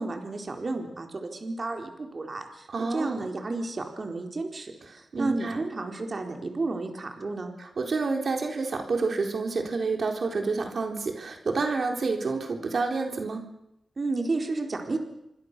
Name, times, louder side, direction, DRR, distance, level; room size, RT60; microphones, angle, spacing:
voice 1, 0.0-7.5 14.0-15.0, right 3 dB, 45° right, 4 dB, 4.2 m, -32 dB
voice 2, 2.7-3.3 4.9-5.6 7.6-13.5, right 4 dB, 65° right, 3 dB, 4.1 m, -29 dB
27.5 x 24.5 x 6.9 m, 0.84 s
cardioid pair, 75°, 0 cm